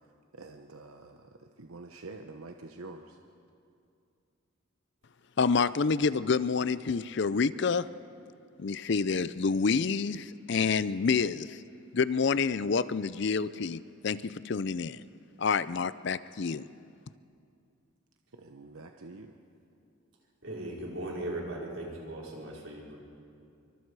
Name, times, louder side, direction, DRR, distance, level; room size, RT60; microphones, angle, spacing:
voice 1, 0.3-3.2 18.3-19.3, right 3 dB, 85° right, 5 dB, 1.0 m, -47 dB
voice 2, 5.4-7.9 8.6-11.6 11.9-15.0 15.4-16.6, left 5 dB, 55° left, 16 dB, 0.5 m, -28 dB
voice 3, 20.4-23.0, right 1 dB, 65° right, -3 dB, 4.9 m, -38 dB
26.5 x 24.5 x 4.8 m, 2.5 s
head